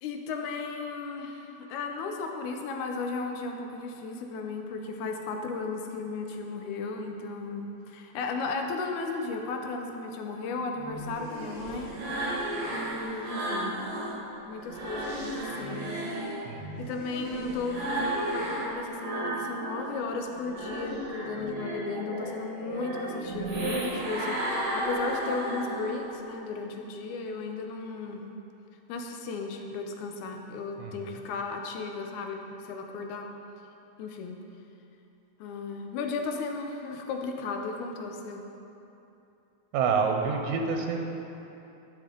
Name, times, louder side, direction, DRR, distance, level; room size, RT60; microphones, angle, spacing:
voice 1, 0.0-11.9 12.7-13.8 14.5-16.0 16.8-28.3 28.9-33.3 34.0-34.4 35.4-38.5, left 4 dB, 85° left, 3 dB, 2.1 m, -35 dB
sound 1, 10.8-14.2 14.6-19.9 20.3-26.2, right 1 dB, 50° right, 1.2 m, -34 dB
voice 2, 16.5-16.9 30.8-31.2 39.7-41.0, right 5 dB, 90° right, 3 dB, 2.0 m, -28 dB
12.0 x 5.3 x 3.8 m, 2.9 s
omnidirectional pair, 3.3 m